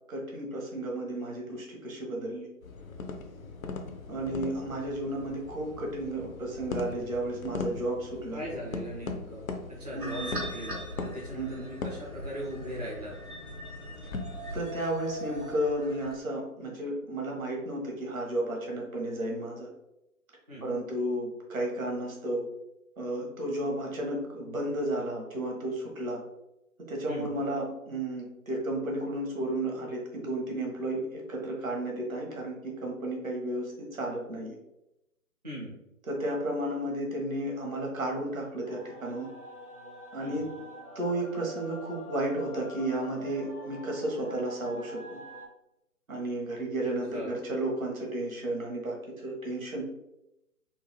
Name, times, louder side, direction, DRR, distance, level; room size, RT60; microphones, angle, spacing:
voice 1, 0.1-2.5 4.1-8.4 9.9-10.3 11.3-11.6 14.5-19.7 20.6-22.4 23.0-26.2 26.9-34.5 36.1-39.3 40.1-40.4 40.9-45.2 46.1-49.0 49.2-49.8, right 1 dB, 65° right, -1 dB, 1.2 m, -33 dB
sound 1, 2.6-14.7, left 4 dB, 70° left, 0.6 m, -40 dB
voice 2, 8.3-9.4 9.7-13.2 20.5-20.6 27.1-27.3 35.4-35.8 40.2-40.4 46.8-47.3, equal, 30° right, -6 dB, 0.4 m, -39 dB
sound 2, 10.0-16.2, right 1 dB, 90° right, 1.4 m, -41 dB
sound 3, 38.6-45.5, equal, 85° left, 1.2 m, -46 dB
3.7 x 2.2 x 3.0 m, 0.88 s
figure-of-eight pair, 145°, 44 cm